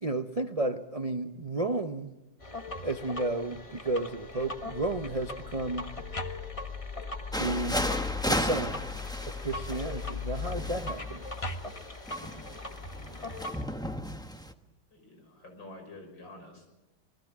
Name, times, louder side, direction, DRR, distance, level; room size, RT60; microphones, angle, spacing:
voice 1, 0.0-2.1 2.8-5.8 7.3-7.9 8.3-8.8 9.2-11.2, right 2 dB, 40° right, 7 dB, 0.5 m, -32 dB
sound 1, 2.4-13.6, left 4 dB, 20° left, 1.3 m, -38 dB
sound 2, 7.3-14.5, equal, 5° left, 0.8 m, -35 dB
voice 2, 14.9-16.7, left 2 dB, 80° left, 4 dB, 6.6 m, -48 dB
26.5 x 20.0 x 7.4 m, 1.0 s
omnidirectional pair, 2.0 m